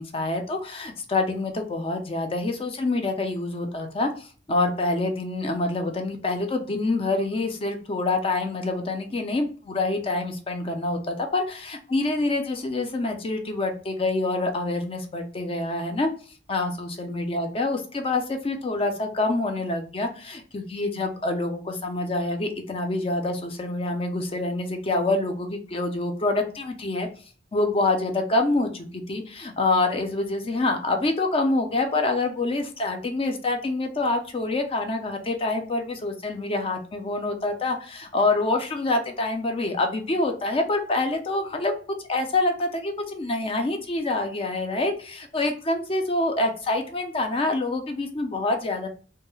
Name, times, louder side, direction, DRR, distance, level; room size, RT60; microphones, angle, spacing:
voice 1, 0.0-16.1 16.5-27.1 27.5-41.7 42.1-48.9, left 2 dB, 30° left, 4 dB, 0.4 m, -26 dB
2.3 x 2.1 x 3.0 m, 0.40 s
head